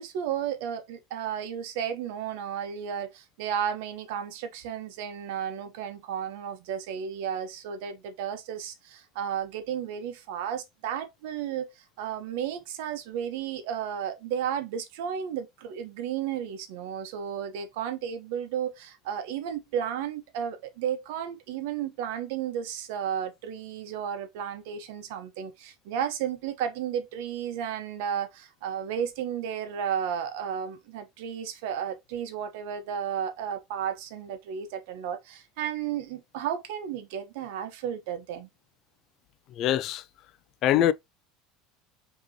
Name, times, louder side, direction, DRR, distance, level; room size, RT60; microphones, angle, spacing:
voice 1, 0.0-11.7 12.0-38.5, right 9 dB, 75° right, 0.9 m, -33 dB
voice 2, 39.6-40.0 40.6-40.9, left 11 dB, 50° left, 0.3 m, -23 dB
5.0 x 2.9 x 2.7 m
supercardioid pair, 135°, 0 cm